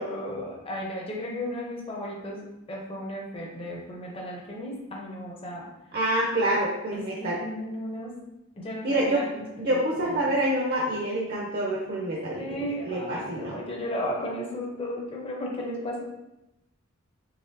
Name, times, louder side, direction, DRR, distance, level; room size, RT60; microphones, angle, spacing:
voice 1, 0.0-5.7 6.9-8.1 8.6-10.2 12.4-16.0, equal, 25° left, -2 dB, 0.6 m, -35 dB
voice 2, 5.9-7.4 8.8-9.2 9.6-13.6, right 1 dB, 50° right, -4 dB, 0.7 m, -27 dB
4.1 x 3.2 x 2.6 m, 0.91 s
head